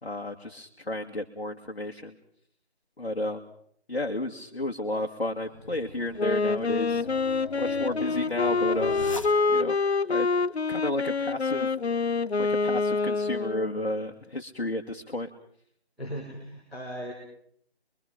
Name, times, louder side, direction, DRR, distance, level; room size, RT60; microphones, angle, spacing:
voice 1, 0.0-2.2 3.0-3.4 3.9-9.0 9.5-9.8 10.1-10.3 10.7-11.7 12.4-15.3, left 1 dB, 60° left, 1 dB, 2.1 m, -32 dB
sound 1, 5.3-9.8, left 2 dB, 30° left, 1.2 m, -40 dB
Wind instrument woodwind instrument, 6.2-13.8, left 4 dB, 75° left, 0.8 m, -26 dB
voice 2, 16.0-17.1, equal, ahead, -19 dB, 2.2 m, -37 dB
27.5 x 23.0 x 5.1 m, 0.64 s
figure-of-eight pair, 170°, 32 cm